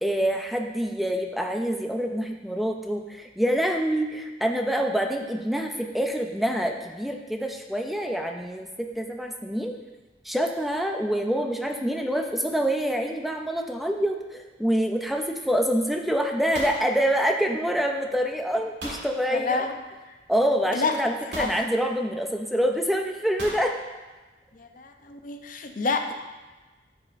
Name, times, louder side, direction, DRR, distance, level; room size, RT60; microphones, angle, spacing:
voice 1, 0.0-9.7 10.2-19.7 20.3-23.7, equal, ahead, 2 dB, 0.4 m, -26 dB
sound 1, 15.1-15.2 15.5-15.9 16.2-17.8 18.8-19.1 20.3-20.4 21.3-21.7 23.4-23.7, right 1 dB, 80° right, 1.7 m, -37 dB
voice 2, 19.3-19.7 20.7-21.0 21.4-21.5 24.5-26.1, left 4 dB, 50° left, 6 dB, 0.6 m, -28 dB
11.0 x 4.9 x 2.5 m, 1.2 s
head